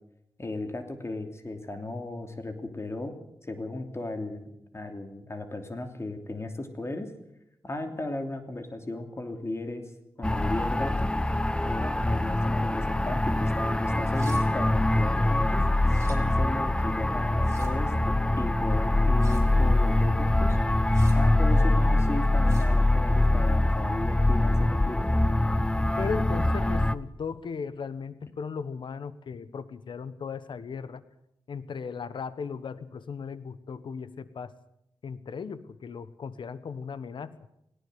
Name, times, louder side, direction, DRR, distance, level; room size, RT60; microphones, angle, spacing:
voice 1, 0.4-3.2 3.4-7.1 7.6-9.9 10.2-11.1 11.6-15.7 16.1-20.6 21.1-25.0, left 2 dB, 35° left, 6 dB, 2.9 m, -36 dB
sound 1, 10.2-26.9, left 1 dB, 10° left, 0.8 m, -24 dB
sound 2, 14.1-14.4 15.8-16.2 17.4-17.7 19.2-19.5 20.9-21.2 22.5-22.7, right 3 dB, 35° right, 5.0 m, -48 dB
voice 2, 26.0-31.0 31.5-34.5 35.0-37.4, left 5 dB, 75° left, 15 dB, 1.2 m, -37 dB
18.5 x 17.5 x 7.9 m, 0.81 s
cardioid pair, 60°, 8 cm